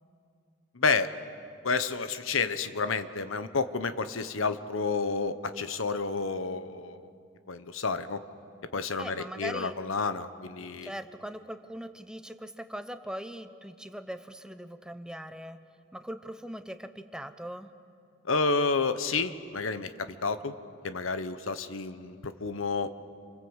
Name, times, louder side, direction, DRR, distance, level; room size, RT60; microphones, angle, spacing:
voice 1, 0.7-1.1 1.6-7.1 7.5-8.2 8.7-10.9 18.2-20.5 20.8-22.9, left 4 dB, 85° left, 11 dB, 1.1 m, -30 dB
voice 2, 9.0-9.8 10.8-15.6 15.9-17.7, equal, 5° right, 9 dB, 0.8 m, -40 dB
28.0 x 26.0 x 8.1 m, 2.4 s
head